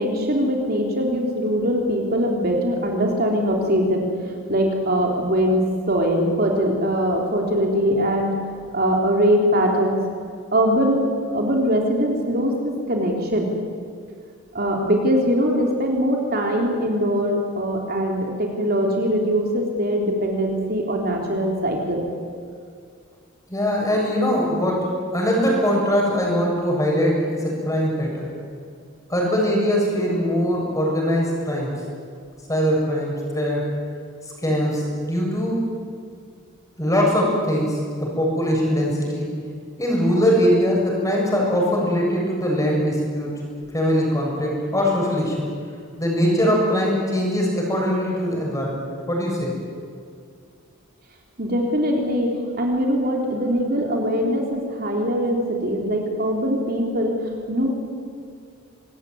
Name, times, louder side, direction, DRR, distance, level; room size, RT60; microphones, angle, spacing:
voice 1, 0.0-8.3 8.7-10.0 10.5-13.5 14.5-22.1 51.4-52.3 52.6-57.7, equal, 45° right, 1 dB, 3.6 m, -22 dB
voice 2, 23.5-28.3 29.1-31.7 32.5-33.7 34.4-35.6 36.8-39.3 39.8-43.3 43.7-45.5 46.0-49.5, equal, 15° left, -2 dB, 7.6 m, -21 dB
25.5 x 20.5 x 9.6 m, 2.2 s
head